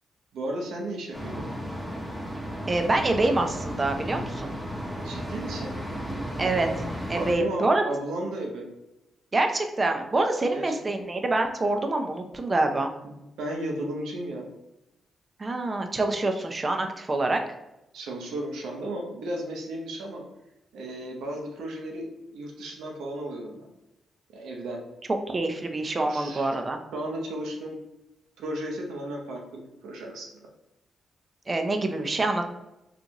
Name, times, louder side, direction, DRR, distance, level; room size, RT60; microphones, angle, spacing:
voice 1, 0.3-1.5 5.0-5.8 7.1-8.7 10.5-10.7 13.0-14.5 17.9-20.2 20.7-23.7 24.3-24.8 26.1-26.6 26.9-27.8 28.4-30.3, right 1 dB, 85° right, 0 dB, 0.7 m, -34 dB
sound 1, 1.1-7.3, equal, 5° right, 0.9 m, -34 dB
voice 2, 2.7-4.5 6.4-6.7 7.1-7.8 9.3-12.9 15.4-17.4 25.3-26.8 31.5-32.5, right 2 dB, 35° right, 5 dB, 0.5 m, -26 dB
3.8 x 2.5 x 2.9 m, 0.91 s
cardioid pair, 65°, 0 cm